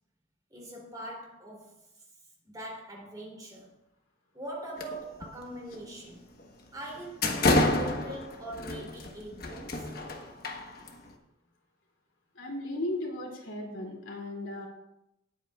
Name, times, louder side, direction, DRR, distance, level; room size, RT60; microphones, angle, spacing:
voice 1, 0.5-2.0 2.4-3.8 4.3-6.3 6.7-9.9, right 1 dB, 20° right, -2 dB, 3.1 m, -42 dB
sound 1, 4.8-5.2 5.6-5.8 6.4-6.5 6.9-11.1, left 2 dB, 50° left, 1.2 m, -29 dB
voice 2, 12.3-14.7, left 1 dB, 75° left, 0 dB, 2.7 m, -36 dB
18.0 x 8.5 x 2.4 m, 0.84 s
head